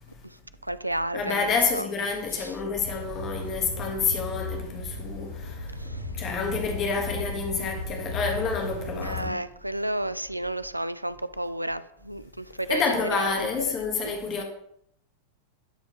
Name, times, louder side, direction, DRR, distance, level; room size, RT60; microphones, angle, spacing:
voice 1, 0.2-1.9 2.3-2.6 5.7-6.1 8.9-12.8 13.1-13.7 14.0-14.4, right 1 dB, 85° right, 0.3 m, -32 dB
voice 2, 1.1-5.7 6.2-9.4 12.7-14.4, left 4 dB, 30° left, 1.3 m, -28 dB
sound 1, 2.8-9.2, left 3 dB, 85° left, 1.4 m, -36 dB
11.5 x 4.2 x 3.0 m
figure-of-eight pair, 90°, 0 cm